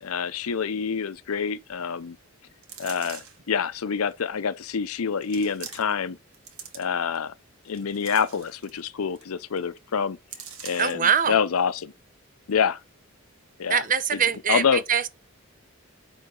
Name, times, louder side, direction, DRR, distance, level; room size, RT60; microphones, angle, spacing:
voice 1, 0.0-2.2 2.8-6.2 6.7-7.3 7.7-10.2 10.6-11.9 12.5-12.8 13.6-13.8 14.1-14.2 14.5-14.8, left 6 dB, 85° left, 0.6 m, -26 dB
sound 1, 2.6-3.5 4.2-4.3 5.2-6.1 6.3-7.2 7.6-8.8 9.2-9.3 9.6-9.8 10.3-11.1 11.6-11.7, right 7 dB, 90° right, 1.6 m, -43 dB
voice 2, 10.8-11.3 13.7-15.1, right 7 dB, 40° right, 0.7 m, -23 dB
9.4 x 3.9 x 3.8 m
head